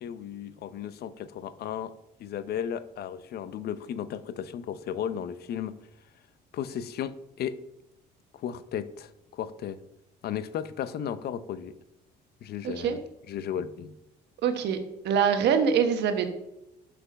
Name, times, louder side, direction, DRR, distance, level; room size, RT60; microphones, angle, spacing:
voice 1, 0.0-1.9 2.2-5.7 6.5-7.6 8.3-9.8 10.2-11.8 12.4-13.0 13.3-14.0, left 9 dB, 60° left, 14 dB, 0.6 m, -35 dB
voice 2, 12.6-13.0 14.4-14.8 15.0-16.3, right 7 dB, 70° right, 7 dB, 1.1 m, -24 dB
6.0 x 5.8 x 5.2 m, 0.88 s
supercardioid pair, 80°, 18 cm